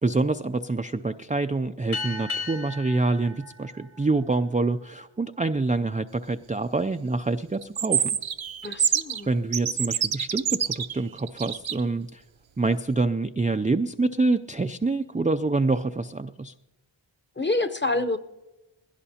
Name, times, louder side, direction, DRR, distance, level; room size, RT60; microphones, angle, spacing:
voice 1, 0.0-8.2 9.3-12.2 12.6-16.5, right 3 dB, 15° right, 9 dB, 0.4 m, -26 dB
sound 1, 1.9-4.9, left 3 dB, 80° left, 4.1 m, -36 dB
sound 2, 7.6-9.2 9.5-11.8, right 8 dB, 65° right, 0.7 m, -26 dB
voice 2, 8.6-9.3 17.4-18.2, left 2 dB, 20° left, 10 dB, 0.9 m, -27 dB
21.0 x 16.5 x 2.8 m, 1.0 s
wide cardioid pair, 45°, 50 cm